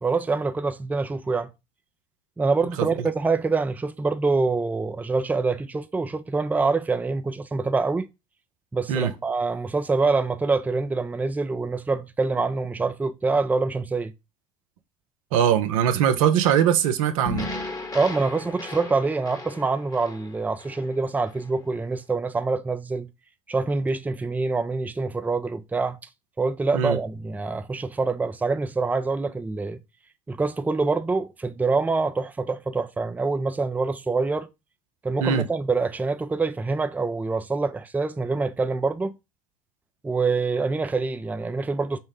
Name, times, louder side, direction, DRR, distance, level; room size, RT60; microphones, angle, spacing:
voice 1, 0.0-1.5 2.4-8.1 8.7-14.1 17.9-23.1 23.5-26.0 26.4-29.8 30.3-34.5 35.0-39.1 40.0-42.0, right 3 dB, 10° right, 0.4 m, -25 dB
voice 2, 15.3-17.5 26.7-27.0 35.2-35.5, right 9 dB, 75° right, 0.6 m, -21 dB
sound 1, 17.3-21.6, left 1 dB, 20° left, 1.1 m, -36 dB
5.5 x 2.1 x 3.4 m
hypercardioid pair, 65°, 18 cm